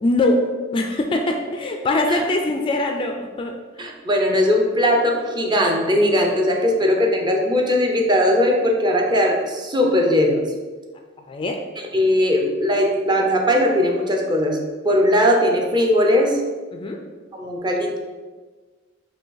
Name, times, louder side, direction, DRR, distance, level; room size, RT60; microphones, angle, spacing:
voice 1, 0.0-3.6 11.3-11.6 16.7-17.0, left 2 dB, 25° left, 3 dB, 0.3 m, -22 dB
voice 2, 3.8-10.4 11.9-14.6 14.8-16.4 17.3-18.0, left 1 dB, 25° right, 1 dB, 0.5 m, -19 dB
5.0 x 2.6 x 3.9 m, 1.4 s
head